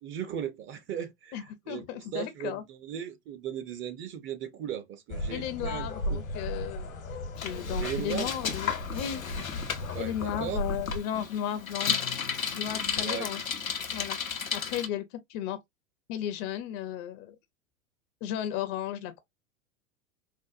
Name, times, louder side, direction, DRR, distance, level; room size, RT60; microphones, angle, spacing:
voice 1, 0.0-6.2 7.8-8.3 9.9-10.6 13.0-13.3, right 9 dB, 30° right, 0.7 m, -37 dB
voice 2, 1.3-2.6 5.3-6.9 7.4-9.2 10.0-11.9 12.5-13.4 13.9-15.6 16.1-17.3 18.2-19.2, left 10 dB, 40° left, 0.6 m, -35 dB
sound 1, 5.1-11.0, equal, 75° left, 1.1 m, -36 dB
Bicycle, 7.4-14.9, left 7 dB, 90° left, 0.8 m, -34 dB
4.4 x 2.1 x 2.4 m
figure-of-eight pair, 90°, 40 cm